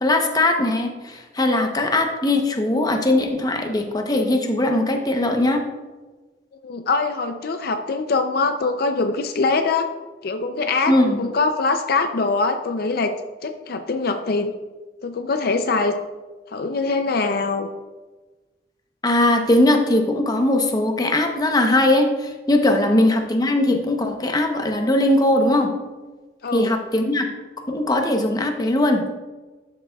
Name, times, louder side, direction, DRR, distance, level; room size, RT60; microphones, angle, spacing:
voice 1, 0.0-5.6 10.9-11.2 19.0-25.7 26.5-27.3 27.7-29.0, left 1 dB, 20° left, 4 dB, 0.8 m, -20 dB
voice 2, 6.6-9.9 10.2-13.2 13.4-14.5 15.0-16.0 16.5-17.7 22.8-23.1 26.4-26.7, left 3 dB, 60° left, 6 dB, 0.5 m, -23 dB
11.5 x 6.6 x 2.3 m, 1.2 s
head